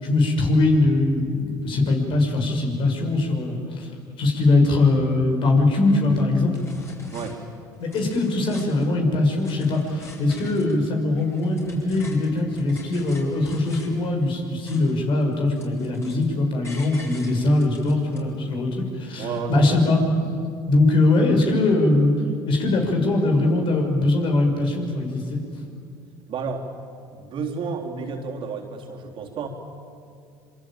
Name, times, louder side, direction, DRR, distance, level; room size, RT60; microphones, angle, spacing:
voice 1, 0.0-3.9 4.2-6.5 7.8-20.0 20.7-22.1 22.5-25.4, left 2 dB, 55° left, 2 dB, 6.4 m, -21 dB
sound 1, 6.1-6.2 6.5-7.3 7.7-8.9 9.3-10.8 11.1-14.0 14.3-15.1 15.3-16.3 16.6-18.2, left 2 dB, 25° left, 7.9 m, -45 dB
voice 2, 19.2-19.8 26.3-26.7 27.1-29.5, right 5 dB, 55° right, 2 dB, 3.7 m, -31 dB
26.5 x 24.0 x 9.0 m, 2.4 s
hypercardioid pair, 70°, 10 cm